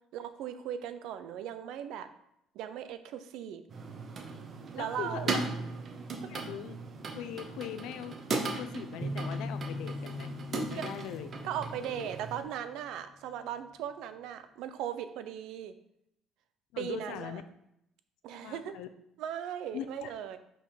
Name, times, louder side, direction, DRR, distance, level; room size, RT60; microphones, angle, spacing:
voice 1, 0.1-2.1 2.5-3.6 4.7-5.3 10.7-10.9 11.4-15.7 16.8-17.4 18.2-18.7 19.2-20.4, right 9 dB, 75° right, 10 dB, 0.7 m, -38 dB
sound 1, 3.7-12.4, right 3 dB, 35° right, 0.9 m, -38 dB
voice 2, 4.8-5.5 6.3-6.8 7.1-11.4 11.8-12.1 16.7-17.4 18.3-18.9 19.7-20.1, left 10 dB, 85° left, 11 dB, 0.6 m, -41 dB
sound 2, 9.0-12.7, left 1 dB, 15° right, 0.7 m, -40 dB
5.6 x 5.3 x 5.1 m, 0.78 s
cardioid pair, 160°, 0 cm